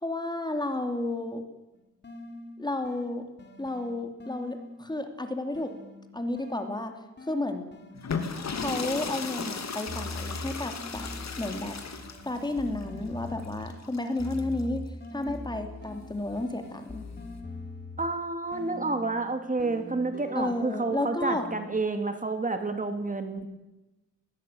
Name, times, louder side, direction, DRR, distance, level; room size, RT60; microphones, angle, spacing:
voice 1, 0.0-1.4 2.6-3.2 3.6-5.7 6.1-7.0 7.3-7.7 8.6-11.1 11.4-11.8 12.2-14.8 15.1-17.0 20.3-21.5, left 2 dB, 15° left, 6 dB, 2.6 m, -32 dB
sound 1, 1.7-4.9 5.5-9.3 9.9-13.8 14.2-18.2 18.5-21.6, left 2 dB, 35° left, 3.1 m, -42 dB
sound 2, 7.9-14.6 15.9-17.4, left 5 dB, 65° left, 2.7 m, -36 dB
voice 2, 18.0-23.5, right 3 dB, 25° right, 7 dB, 2.1 m, -29 dB
20.5 x 18.0 x 9.0 m, 1.0 s
wide cardioid pair, 150°, 30 cm